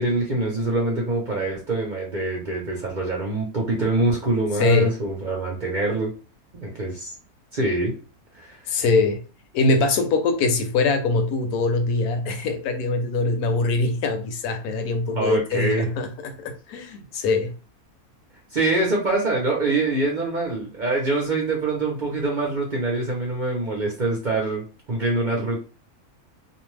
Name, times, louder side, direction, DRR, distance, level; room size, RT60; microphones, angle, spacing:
voice 1, 0.0-6.1 6.5-7.1 7.5-7.9 8.3-8.8 15.2-15.9 18.5-25.6, right 2 dB, 45° right, 0.6 m, -24 dB
voice 2, 4.6-4.9 8.7-9.2 9.5-17.5, left 3 dB, 80° left, 1.1 m, -23 dB
2.6 x 2.2 x 3.1 m
omnidirectional pair, 1.6 m